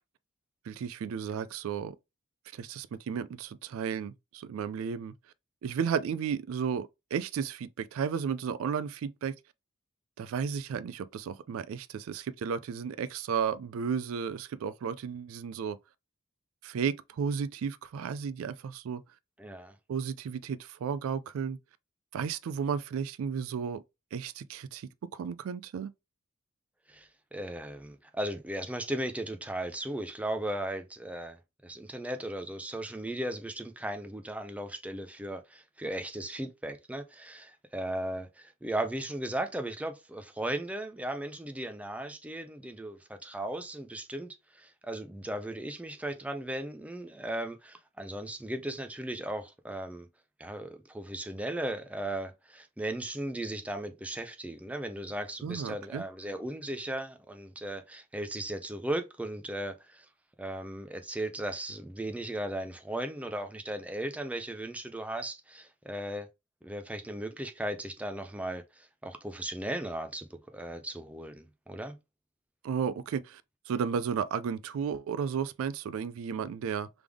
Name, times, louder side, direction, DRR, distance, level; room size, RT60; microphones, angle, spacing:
voice 1, 0.7-2.0 2.5-5.1 5.6-9.4 10.2-15.8 16.6-19.0 19.9-21.6 22.1-23.8 24.1-25.9 55.4-56.0 72.6-76.9, right 7 dB, 70° right, 0.3 m, -33 dB
voice 2, 19.4-19.8 26.9-50.1 50.4-60.1 60.4-66.3 66.6-72.0, right 1 dB, 5° right, 0.5 m, -37 dB
3.5 x 3.4 x 3.4 m
head